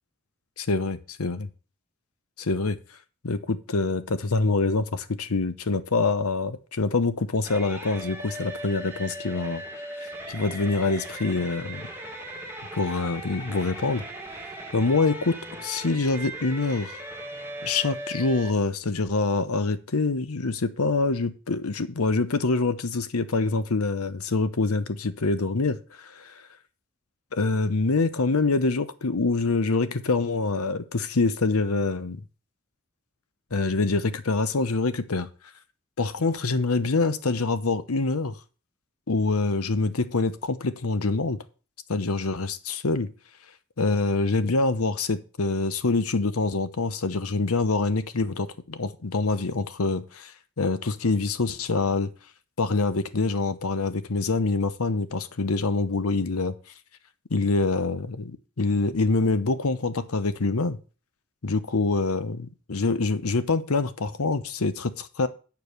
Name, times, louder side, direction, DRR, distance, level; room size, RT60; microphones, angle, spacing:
voice 1, 0.6-1.4 2.4-2.8 3.2-11.9 12.7-14.0 14.7-17.0 17.6-26.4 27.3-32.2 33.5-35.3 36.0-38.4 39.1-41.4 41.9-43.1 43.8-52.1 52.6-56.5 57.3-60.8 61.4-65.3, left 3 dB, 90° left, 0.9 m, -25 dB
sound 1, 7.4-18.5, right 1 dB, 10° right, 1.2 m, -38 dB
9.3 x 4.9 x 6.7 m
head